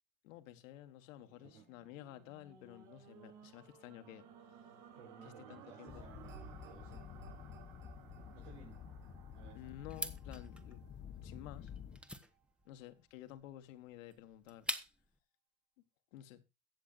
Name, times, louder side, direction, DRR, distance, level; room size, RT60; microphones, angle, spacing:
voice 1, 0.2-4.3 5.2-6.1 9.5-10.8 11.2-11.7 12.6-14.7 16.1-16.4, left 13 dB, 85° left, 1.5 m, -52 dB
sound 1, 1.2-11.4 12.0-12.1, right 7 dB, 60° right, 5.2 m, -58 dB
voice 2, 4.9-7.1 8.3-8.8 9.3-9.7, right 5 dB, 85° right, 5.3 m, -57 dB
sound 2, 5.9-12.0, left 7 dB, 25° left, 1.0 m, -51 dB
sound 3, 9.9-15.2, equal, 5° right, 1.0 m, -45 dB
22.5 x 7.5 x 2.5 m
supercardioid pair, 125°, 38 cm